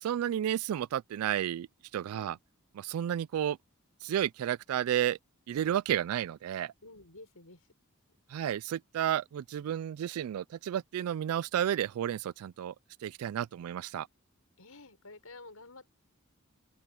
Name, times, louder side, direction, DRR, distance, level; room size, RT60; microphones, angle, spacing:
voice 1, 0.0-1.7 1.9-2.4 2.7-3.6 4.0-5.2 5.5-6.7 8.3-12.7 13.0-14.1, right 10 dB, 90° right, 0.3 m, -32 dB
voice 2, 6.8-7.6 14.6-15.9, left 3 dB, 90° left, 5.8 m, -51 dB
open air
head